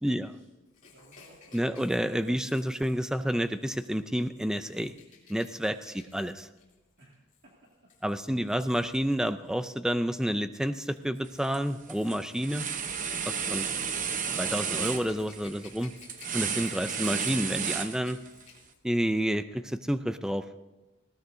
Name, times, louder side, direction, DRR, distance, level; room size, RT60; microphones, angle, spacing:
voice 1, 0.1-0.5 0.9-1.9 5.9-6.0 7.0-7.2 7.4-7.5 8.1-9.2 13.5-14.2, right 1 dB, 55° right, -4 dB, 2.2 m, -57 dB
Rattle / Rattle (instrument), 0.7-9.8 10.7-18.8 19.1-19.2, left 6 dB, 35° left, 3.1 m, -56 dB
voice 2, 1.5-4.9 5.3-6.5 8.0-12.6 13.3-13.6 14.3-15.9 16.3-18.2 18.8-20.4, equal, 5° right, 11 dB, 0.4 m, -29 dB
sound 1, 11.2-11.6 11.9-18.4, right 6 dB, 40° right, 0.9 m, -33 dB
19.5 x 17.0 x 2.7 m, 1.1 s
head